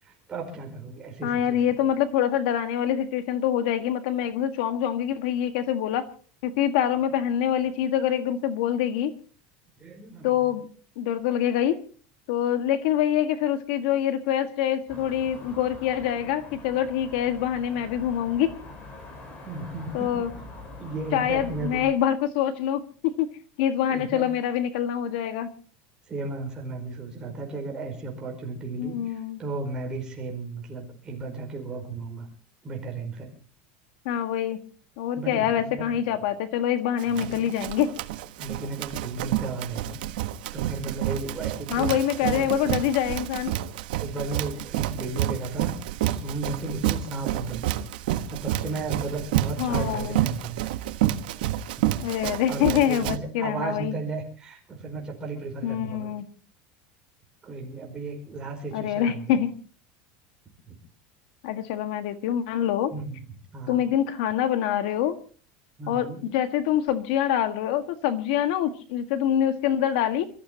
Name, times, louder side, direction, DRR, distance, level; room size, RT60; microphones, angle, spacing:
voice 1, 0.0-1.6 9.8-10.5 19.4-20.3 20.8-21.8 23.9-24.3 26.1-32.3 32.6-33.3 35.1-35.9 37.1-37.4 38.4-40.0 40.5-41.9 42.2-42.4 43.5-43.6 44.0-47.8 48.3-50.6 52.5-56.1 57.4-59.4 60.7-60.8 62.9-63.2 63.5-63.8 65.8-66.2, right 3 dB, 15° right, 0 dB, 5.0 m, -35 dB
voice 2, 1.2-6.1 6.4-9.1 10.2-10.7 11.0-11.8 12.3-18.5 19.9-20.3 21.1-23.3 23.6-25.5 28.8-29.4 34.0-34.6 35.0-37.9 41.7-43.5 49.6-50.2 52.0-53.9 55.6-56.2 58.7-59.5 61.4-62.9 63.7-65.2 65.9-70.3, left 10 dB, 70° left, 8 dB, 1.6 m, -25 dB
sound 1, 14.9-21.9, left 2 dB, 30° left, 4.4 m, -44 dB
Run, 37.0-53.2, right 13 dB, 85° right, 1.2 m, -29 dB
28.5 x 14.0 x 2.9 m, 0.40 s
supercardioid pair, 170°, 5 cm